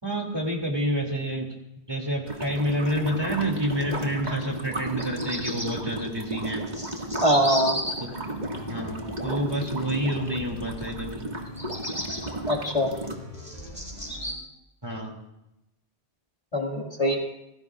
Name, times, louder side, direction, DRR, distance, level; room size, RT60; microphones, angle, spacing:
voice 1, 0.0-1.5 1.9-6.7 8.0-8.1 8.6-11.2 14.8-15.2, equal, 25° right, 0 dB, 2.6 m, -28 dB
sound 1, 2.3-13.1, right 1 dB, 40° right, 2.1 m, -34 dB
Bird vocalization bird call bird song, 4.8-5.7 6.4-7.9 11.4-12.2 12.9-14.3, equal, 5° right, 4.5 m, -34 dB
voice 2, 7.2-7.8 12.5-12.9 16.5-17.2, equal, 35° left, 0 dB, 2.2 m, -22 dB
sound 2, 8.0-14.3, left 1 dB, 75° right, 7.5 m, -43 dB
26.5 x 19.0 x 2.4 m, 0.88 s
omnidirectional pair, 1.1 m